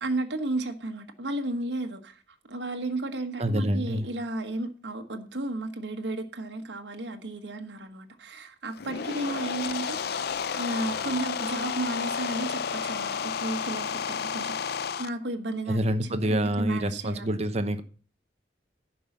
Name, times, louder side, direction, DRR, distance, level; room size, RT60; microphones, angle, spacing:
voice 1, 0.0-2.2 2.5-14.7 15.0-17.5, right 2 dB, 75° right, 1.3 m, -33 dB
voice 2, 3.4-4.1 15.7-17.8, right 1 dB, 35° right, 0.9 m, -27 dB
sound 1, 8.7-15.1, left 6 dB, 65° left, 0.5 m, -31 dB
11.0 x 5.5 x 7.2 m
head